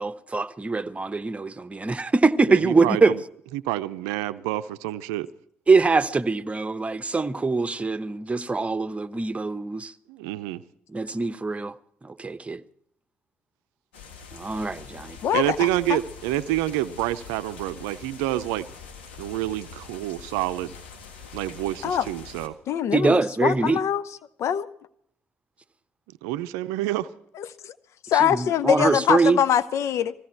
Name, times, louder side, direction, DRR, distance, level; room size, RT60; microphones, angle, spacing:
voice 1, 0.0-3.1 5.7-9.9 10.9-11.7 12.0-12.6 14.3-15.2 22.9-23.8 28.2-29.4, right 4 dB, 25° right, 1.0 m, -23 dB
voice 2, 2.5-3.2 3.5-5.3 10.1-10.6 15.3-18.7 19.2-20.7 21.3-22.6 26.2-27.1, right 15 dB, 75° right, 0.5 m, -28 dB
Afternoon Rain on a Country Porch, 13.9-22.5, left 6 dB, 85° left, 1.6 m, -44 dB
voice 3, 15.2-16.0 21.8-22.1 22.7-24.0 24.4-24.7 27.4-27.8 28.0-30.1, left 9 dB, 60° left, 0.8 m, -23 dB
19.5 x 16.0 x 4.5 m
hypercardioid pair, 45°, 6 cm